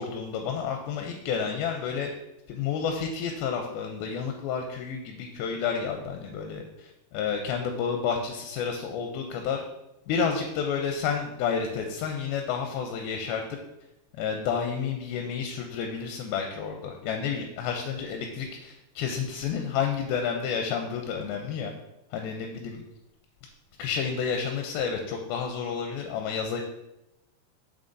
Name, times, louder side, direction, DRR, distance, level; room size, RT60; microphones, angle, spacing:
voice 1, 0.0-2.1 2.5-9.6 10.1-13.4 14.1-21.7 22.1-22.8 23.8-26.6, left 6 dB, 80° left, 3 dB, 2.4 m, -30 dB
7.6 x 5.6 x 2.6 m, 0.92 s
omnidirectional pair, 4.4 m